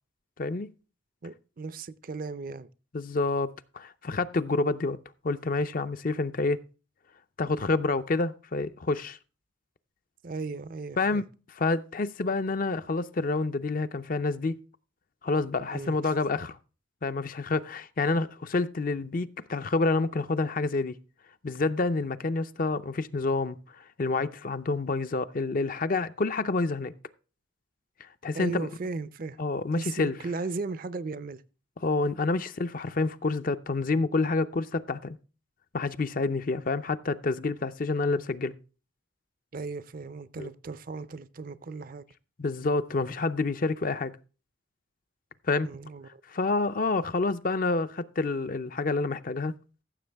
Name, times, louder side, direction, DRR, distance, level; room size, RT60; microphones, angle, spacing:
voice 1, 1.2-2.7 10.2-11.2 15.7-16.1 28.3-29.4 29.8-31.4 39.5-42.1 45.6-46.2, right 3 dB, 45° right, 0.5 m, -36 dB
voice 2, 2.9-5.0 5.2-6.6 7.4-9.2 11.0-11.3 11.6-14.6 15.2-16.6 17.0-21.0 21.4-26.9 28.2-28.7 29.4-30.2 31.8-35.2 35.7-38.6 40.4-40.5 42.4-44.1 45.5-45.7 46.3-49.5, left 3 dB, 45° left, 0.5 m, -28 dB
15.0 x 7.1 x 3.4 m
head